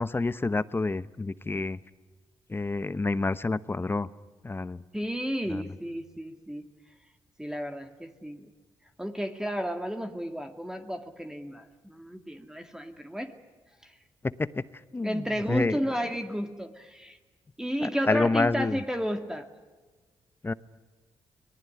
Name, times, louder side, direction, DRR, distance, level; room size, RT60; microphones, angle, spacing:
voice 1, 0.0-1.8 2.5-4.1 4.4-4.8 5.5-5.7 14.2-14.6 14.9-15.8 17.8-18.8 20.4-20.5, left 3 dB, 25° left, 16 dB, 0.9 m, -28 dB
voice 2, 4.9-6.7 7.4-8.5 9.0-13.3 15.0-17.2 17.6-19.5, equal, 5° right, 6 dB, 2.2 m, -32 dB
25.0 x 19.5 x 9.8 m, 1.3 s
supercardioid pair, 60°, 9 cm